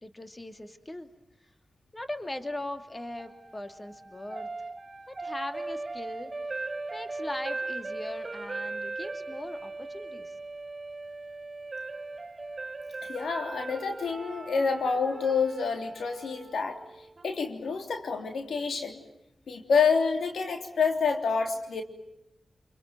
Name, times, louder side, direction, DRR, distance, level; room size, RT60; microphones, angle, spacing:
voice 1, 0.0-1.1 1.9-4.5 5.1-6.3 6.9-10.3, left 1 dB, 25° left, 7 dB, 2.7 m, -39 dB
sound 1, 3.2-17.3, right 3 dB, 40° right, 1.6 m, -39 dB
voice 2, 13.1-16.8 17.2-19.0 19.5-21.8, left 5 dB, 80° left, 5 dB, 3.2 m, -28 dB
28.5 x 22.5 x 9.2 m, 0.87 s
cardioid pair, 40°, 0 cm